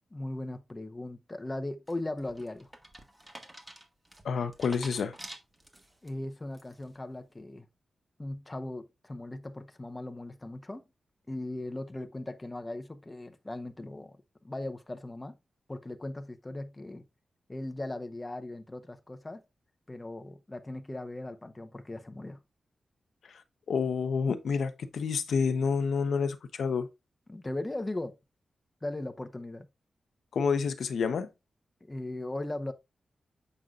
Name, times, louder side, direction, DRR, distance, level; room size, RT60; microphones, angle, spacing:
voice 1, 0.1-2.7 6.0-7.7 8.2-10.8 11.3-14.2 14.4-15.4 15.7-17.1 17.5-19.4 19.9-22.4 27.3-28.2 28.8-29.7 31.8-32.7, left 2 dB, 20° left, 0.8 m, -38 dB
sound 1, 1.9-6.1 6.5-7.0, right 1 dB, 15° right, 1.5 m, -48 dB
voice 2, 4.2-5.2 23.3-23.4 23.7-26.9 30.3-31.3, left 5 dB, 85° left, 0.8 m, -29 dB
7.8 x 5.5 x 2.4 m
wide cardioid pair, 105°, 0 cm